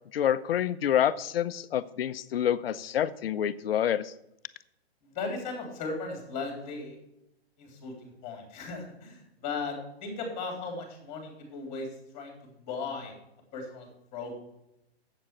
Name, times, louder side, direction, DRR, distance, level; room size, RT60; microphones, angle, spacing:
voice 1, 0.1-4.1, left 10 dB, 65° left, 14 dB, 0.7 m, -27 dB
voice 2, 5.0-7.0 7.6-13.1 13.5-14.3, left 4 dB, 20° left, 2 dB, 3.3 m, -37 dB
7.8 x 7.4 x 7.2 m, 0.84 s
hypercardioid pair, 150°, 32 cm